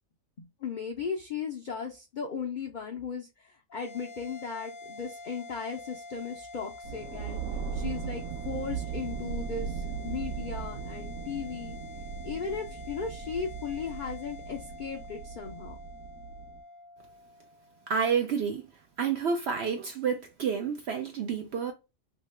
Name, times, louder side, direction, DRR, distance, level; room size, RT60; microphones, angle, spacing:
voice 1, 0.4-7.4 7.7-11.8 12.2-15.8, left 6 dB, 55° left, 0.5 m, -36 dB
sound 1, 3.7-18.3, left 2 dB, 75° left, 1.0 m, -47 dB
sound 2, 6.8-16.6, right 7 dB, 85° right, 1.0 m, -38 dB
voice 2, 17.9-18.6 19.0-21.7, right 6 dB, 65° right, 0.7 m, -29 dB
2.9 x 2.7 x 3.2 m
omnidirectional pair, 1.4 m